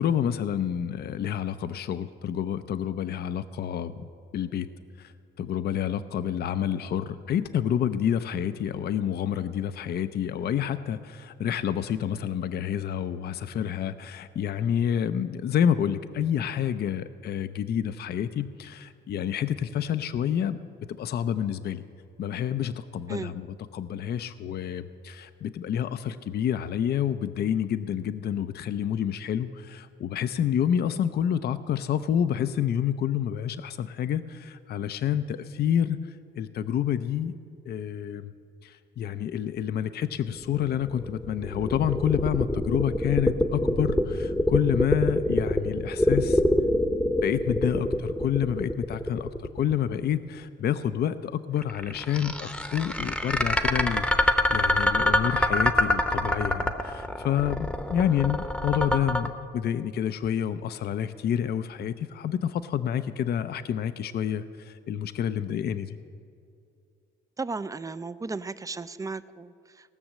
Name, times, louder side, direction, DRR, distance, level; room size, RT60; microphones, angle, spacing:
voice 1, 0.0-4.7 5.0-5.1 5.4-20.6 21.0-21.8 22.2-37.4 37.7-38.3 38.6-46.4 47.0-49.3 49.5-66.0, left 9 dB, 55° left, 12 dB, 0.5 m, -28 dB
sound 1, 40.4-50.3 51.6-59.3, left 1 dB, 5° left, 0.8 m, -25 dB
voice 2, 67.4-69.9, right 3 dB, 15° right, 15 dB, 0.4 m, -35 dB
18.0 x 6.3 x 7.4 m, 2.4 s
cardioid pair, 90°, 20 cm